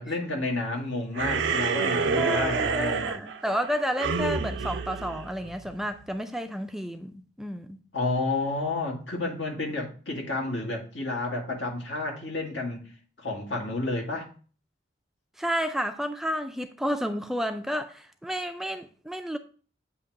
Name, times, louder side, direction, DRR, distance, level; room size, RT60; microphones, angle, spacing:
voice 1, 0.0-3.2 7.9-12.9 13.2-14.3, left 2 dB, 80° left, 1.8 m, -30 dB
sound 1, 1.1-5.9, right 5 dB, 85° right, 0.5 m, -28 dB
voice 2, 2.2-7.8 15.4-19.4, equal, ahead, 0.3 m, -31 dB
8.4 x 2.9 x 4.5 m
head